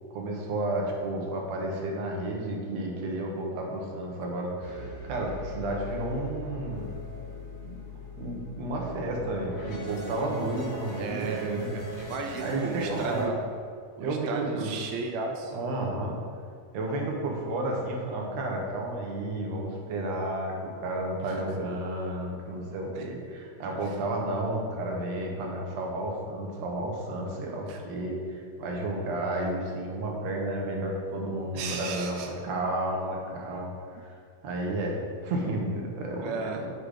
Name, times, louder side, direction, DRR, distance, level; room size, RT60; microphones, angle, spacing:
voice 1, 0.1-6.9 7.6-7.8 8.2-11.7 12.4-13.3 14.0-14.7 15.5-16.2 16.7-33.7 34.0-34.1 34.4-35.0 35.2-36.7, right 1 dB, 65° right, -1 dB, 1.9 m, -32 dB
sound 1, 4.6-13.2, left 1 dB, 85° left, 3.3 m, -40 dB
voice 2, 10.9-13.4 14.0-15.6 21.3-21.4 22.9-23.0 27.7-27.8 31.5-32.3 36.2-36.6, right 5 dB, 85° right, 3 dB, 1.5 m, -35 dB
8.3 x 3.8 x 4.9 m, 2.1 s
omnidirectional pair, 3.7 m